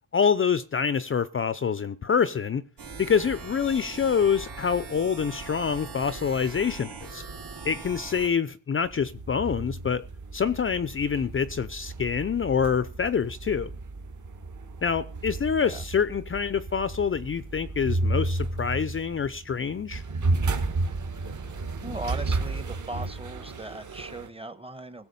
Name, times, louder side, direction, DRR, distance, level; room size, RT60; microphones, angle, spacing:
voice 1, 0.1-2.6 3.0-7.2 7.6-10.0 10.3-13.7 14.8-20.0, left 6 dB, 30° left, 0.6 m, -26 dB
sound 1, 2.8-8.3, right 4 dB, 85° right, 4.3 m, -40 dB
sound 2, 8.8-24.3, right 2 dB, 45° right, 2.1 m, -32 dB
voice 2, 21.8-25.1, right 2 dB, 15° right, 1.1 m, -38 dB
16.5 x 7.0 x 5.5 m
cardioid pair, 90°, 40 cm